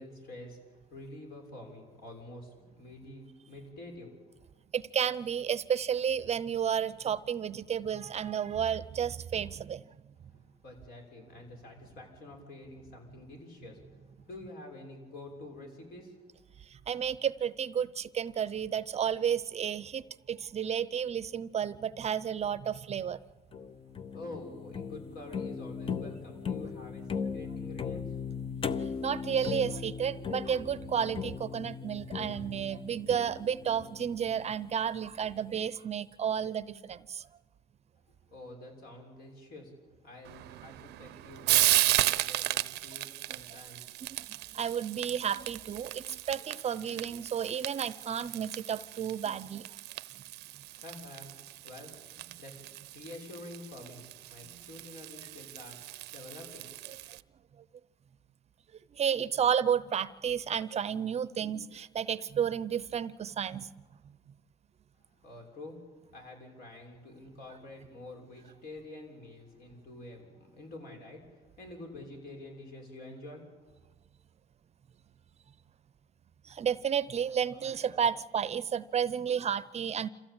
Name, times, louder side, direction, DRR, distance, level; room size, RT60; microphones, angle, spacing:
voice 1, 0.0-4.1 10.3-16.2 24.1-28.2 38.3-39.7 40.0-44.0 44.4-44.6 50.5-51.9 52.4-55.8 56.1-56.7 65.2-65.8 66.1-73.6, left 2 dB, 65° left, 1 dB, 6.8 m, -48 dB
voice 2, 4.7-9.9 16.7-23.2 29.0-37.3 44.2-49.7 54.5-54.6 57.1-57.2 58.9-63.7 76.4-80.1, right 8 dB, 40° right, 17 dB, 0.7 m, -32 dB
sound 1, 23.5-34.7, left 6 dB, 30° left, 0.8 m, -38 dB
Frying (food), 40.2-57.2, right 17 dB, 80° right, 0.7 m, -34 dB
27.0 x 15.0 x 8.8 m, 1.3 s
cardioid pair, 110°, 17 cm